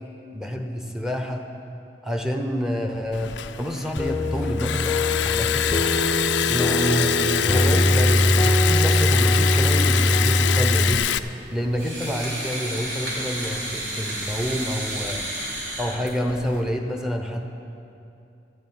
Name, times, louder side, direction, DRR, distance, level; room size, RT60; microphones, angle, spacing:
voice 1, 0.3-1.5 2.0-3.3 3.6-4.9 5.2-5.7 6.5-11.0 11.5-15.2 15.8-17.4, equal, 5° right, 3 dB, 1.0 m, -28 dB
Liquid, 3.1-11.2, left 10 dB, 85° left, 0.4 m, -25 dB
sound 1, 4.0-10.9, left 1 dB, 15° left, 0.5 m, -21 dB
sound 2, 5.1-16.6, right 1 dB, 85° right, 3.5 m, -35 dB
13.5 x 7.8 x 8.7 m, 2.6 s
head